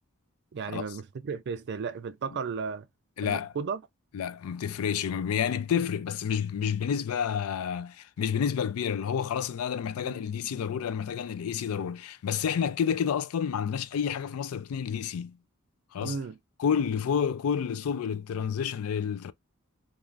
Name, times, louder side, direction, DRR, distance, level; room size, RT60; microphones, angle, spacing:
voice 1, 0.5-2.9 3.2-3.8 10.0-10.2 16.0-16.4, right 5 dB, 55° right, 0.4 m, -34 dB
voice 2, 3.2-3.5 4.1-15.4 15.9-16.2 16.6-19.3, left 7 dB, 80° left, 0.4 m, -29 dB
2.4 x 2.4 x 3.1 m
head